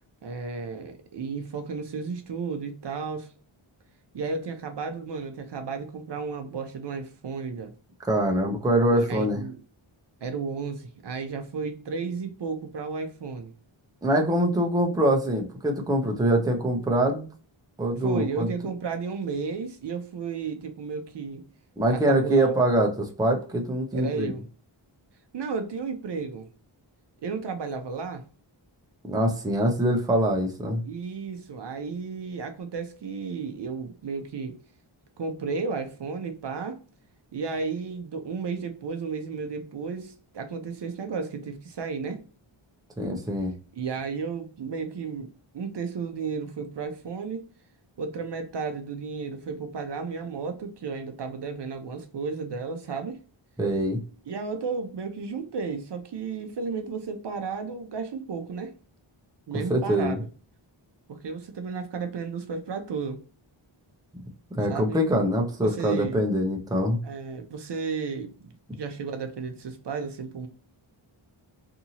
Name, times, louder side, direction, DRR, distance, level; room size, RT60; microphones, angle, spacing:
voice 1, 0.2-3.3 4.1-7.7 8.9-9.5 10.2-13.5 18.0-21.4 21.9-22.5 23.9-24.4 25.3-26.5 27.2-28.2 30.8-34.6 35.2-36.8 37.3-42.2 43.7-45.3 45.5-47.5 48.0-53.2 54.3-58.7 59.5-60.2 61.1-63.2 64.7-65.0 65.6-66.3 67.0-70.5, right 5 dB, 60° right, 0.5 m, -33 dB
voice 2, 8.1-9.4 14.0-17.3 17.8-18.5 21.8-24.3 29.1-30.8 43.0-43.5 53.6-54.0 59.7-60.2 64.5-67.0, right 1 dB, 10° right, 0.5 m, -24 dB
2.8 x 2.6 x 2.7 m
wide cardioid pair, 110°, 48 cm